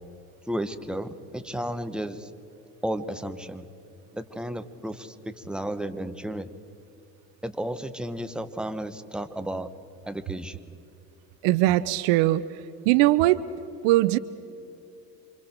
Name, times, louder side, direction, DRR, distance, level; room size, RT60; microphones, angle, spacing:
voice 1, 0.5-2.3 2.8-3.7 4.1-6.5 7.4-9.7 10.0-10.6, right 1 dB, ahead, 10 dB, 1.4 m, -33 dB
voice 2, 11.4-13.4 13.8-14.2, right 17 dB, 60° right, 16 dB, 0.8 m, -21 dB
28.5 x 25.5 x 4.6 m, 2.8 s
hypercardioid pair, 65°, 49 cm